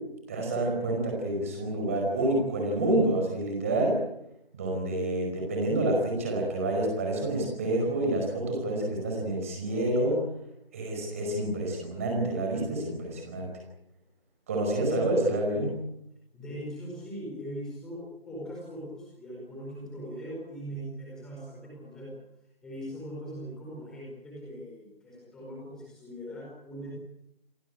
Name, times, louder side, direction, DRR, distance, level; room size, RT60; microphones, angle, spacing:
voice 1, 0.3-4.0 4.5-10.2 10.7-13.5 14.5-15.8, right 1 dB, 15° right, 0 dB, 5.0 m, -28 dB
voice 2, 16.3-22.2 22.6-26.9, equal, ahead, -4 dB, 4.6 m, -40 dB
29.5 x 16.0 x 8.9 m, 0.81 s
figure-of-eight pair, 170°, 30 cm